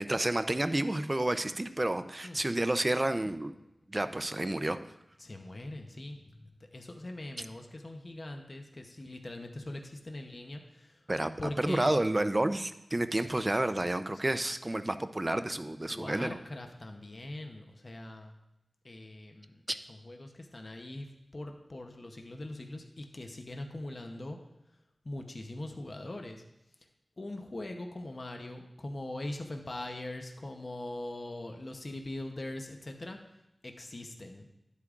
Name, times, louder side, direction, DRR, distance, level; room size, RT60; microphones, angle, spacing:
voice 1, 0.0-3.5 3.9-4.8 11.1-11.3 11.6-16.4 19.7-19.8, right 1 dB, 30° right, 10 dB, 0.5 m, -30 dB
voice 2, 5.2-11.0 11.4-11.9 13.3-13.4 15.9-18.3 18.8-19.6 19.9-24.4 25.0-26.4 27.2-33.2 33.6-34.5, left 1 dB, 50° left, 4 dB, 0.8 m, -42 dB
11.0 x 8.3 x 2.5 m, 0.88 s
wide cardioid pair, 55°, 0 cm